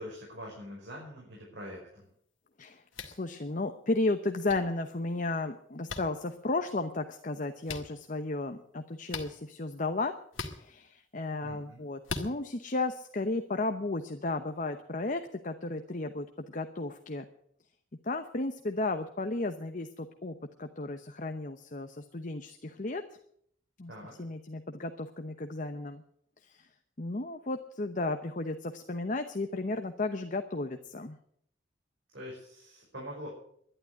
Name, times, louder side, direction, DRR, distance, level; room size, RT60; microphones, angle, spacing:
voice 1, 0.0-2.1 11.4-11.8 23.9-24.2 32.1-33.3, equal, 65° right, -3 dB, 5.5 m, -44 dB
voice 2, 2.6-10.1 10.5-17.3 18.0-23.0 23.8-23.9 24.2-26.0 26.4-26.7 27.0-31.2, left 2 dB, 40° left, 7 dB, 0.9 m, -34 dB
sound 1, 2.9-3.2 4.5-4.6 5.9-6.0 7.6-7.8 9.1-9.3 10.3-10.6 12.0-12.3, left 4 dB, 85° left, 2.0 m, -37 dB
12.0 x 11.0 x 9.3 m, 0.67 s
head